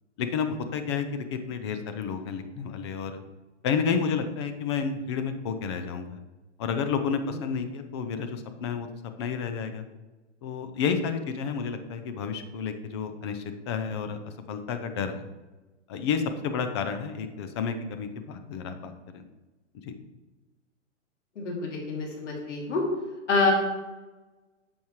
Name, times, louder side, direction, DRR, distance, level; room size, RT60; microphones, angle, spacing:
voice 1, 0.2-3.2 3.6-6.2 6.6-8.9 9.2-9.8 10.4-14.2 14.5-15.3 15.9-19.2 19.8-19.9, left 6 dB, 20° left, 8 dB, 0.5 m, -30 dB
voice 2, 21.4-22.8 23.3-23.5, left 4 dB, 70° left, -2 dB, 2.9 m, -26 dB
10.5 x 7.2 x 3.2 m, 1.2 s
hypercardioid pair, 155°, 37 cm